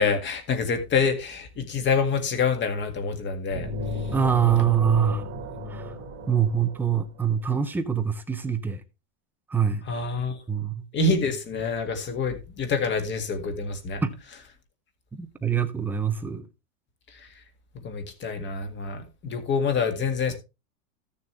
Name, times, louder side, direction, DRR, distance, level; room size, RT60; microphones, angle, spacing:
voice 1, 0.0-3.7 9.9-10.4 10.9-14.0 17.8-20.3, left 4 dB, 25° left, 1.9 m, -26 dB
sound 1, 3.5-7.3, left 1 dB, 25° right, 1.5 m, -34 dB
voice 2, 4.1-5.2 5.7-5.9 6.3-8.8 9.5-9.8 10.5-10.9 14.0-14.1 15.1-16.5, right 8 dB, 5° right, 0.5 m, -24 dB
14.0 x 6.8 x 3.3 m
supercardioid pair, 145°, 43 cm